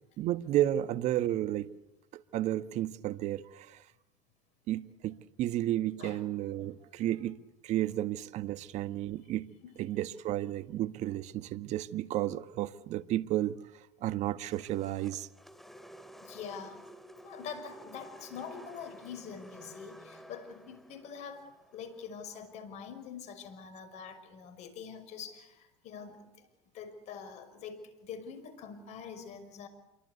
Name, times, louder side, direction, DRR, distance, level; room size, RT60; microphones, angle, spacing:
voice 1, 0.2-1.7 2.1-3.8 4.7-9.5 9.8-13.6 14.0-15.3, right 13 dB, 55° right, 12 dB, 1.5 m, -32 dB
sound 1, 14.5-22.8, right 1 dB, ahead, 2.8 m, -53 dB
voice 2, 16.2-16.8 17.2-26.5 26.7-29.7, left 6 dB, 55° left, 11 dB, 5.8 m, -45 dB
28.5 x 23.5 x 8.3 m, 0.94 s
hypercardioid pair, 90°, 14 cm